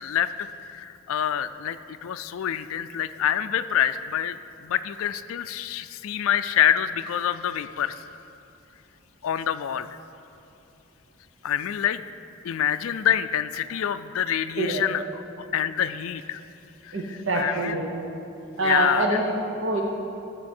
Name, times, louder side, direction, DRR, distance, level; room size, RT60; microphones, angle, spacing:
voice 1, 0.0-4.4 4.6-8.0 9.2-9.9 11.4-12.1 12.4-15.0 15.5-16.4 16.8-17.8 18.6-19.2, left 9 dB, 70° left, 11 dB, 0.3 m, -26 dB
voice 2, 16.9-18.0 18.6-19.8, right 2 dB, 60° right, 0 dB, 0.8 m, -25 dB
15.0 x 6.7 x 4.3 m, 2.8 s
head